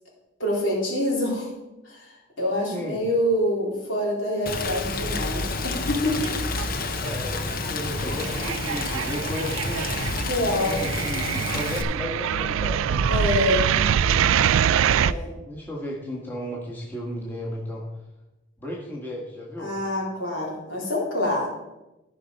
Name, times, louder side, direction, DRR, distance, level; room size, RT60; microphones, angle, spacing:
voice 1, 0.4-1.5 1.8-6.2 10.2-10.8 13.1-13.6 15.0-15.3 19.6-21.5, left 1 dB, 65° left, -5 dB, 3.9 m, -26 dB
voice 2, 2.6-3.0 7.0-9.9 10.6-13.0 15.4-17.8 18.6-19.7, left 1 dB, 10° left, -4 dB, 1.5 m, -34 dB
Rain, 4.5-11.8, left 3 dB, 45° left, 0.8 m, -29 dB
sound 1, 6.1-6.8 7.0-15.1, right 8 dB, 85° right, 0.3 m, -25 dB
14.0 x 5.4 x 5.3 m, 1.0 s
head